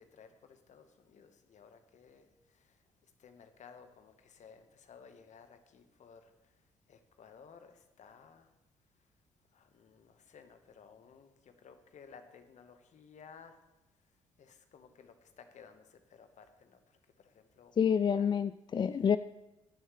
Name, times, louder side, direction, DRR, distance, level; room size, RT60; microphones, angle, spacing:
voice 1, 0.0-8.5 8.9-13.6 13.9-18.3, left 6 dB, 50° left, 1.4 m, -58 dB
voice 2, 17.8-19.2, left 7 dB, 30° left, 0.3 m, -28 dB
14.5 x 11.0 x 3.3 m
figure-of-eight pair, 45°, 15 cm